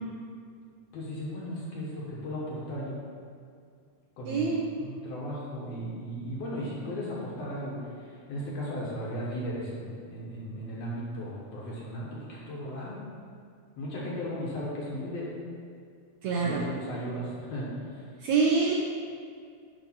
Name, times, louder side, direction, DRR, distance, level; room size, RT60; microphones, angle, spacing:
voice 1, 0.9-3.0 4.2-13.0 13.8-15.3 16.3-17.7, equal, 60° left, -5 dB, 2.0 m, -36 dB
voice 2, 4.3-4.6 16.2-16.6 18.2-18.7, right 4 dB, 80° right, -2 dB, 1.6 m, -25 dB
9.1 x 3.3 x 5.6 m, 2.2 s
omnidirectional pair, 3.7 m